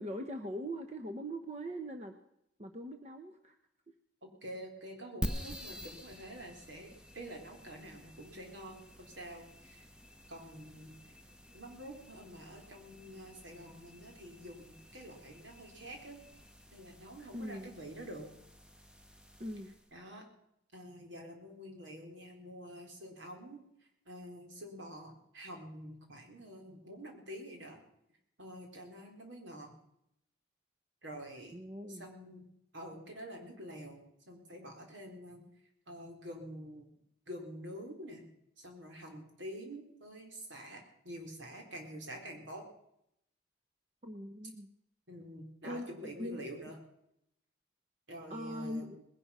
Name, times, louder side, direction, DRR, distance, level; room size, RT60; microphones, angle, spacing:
voice 1, 0.0-2.1 2.6-3.6 17.3-17.7 19.4-19.7 31.5-32.0 44.0-44.7 45.6-46.4 48.3-49.0, equal, 35° right, 6 dB, 1.0 m, -41 dB
voice 2, 4.4-9.9 10.3-11.1 11.5-16.2 16.7-18.3 19.9-20.3 20.7-23.6 24.1-27.8 28.4-29.7 31.0-31.5 31.9-32.5 32.7-35.4 35.9-36.9 37.3-38.3 38.6-42.6 45.1-46.8 48.1-48.9, equal, 75° right, 2 dB, 3.9 m, -47 dB
sound 1, 5.2-19.9, equal, 5° right, 0.8 m, -48 dB
20.0 x 11.0 x 5.6 m, 0.77 s
head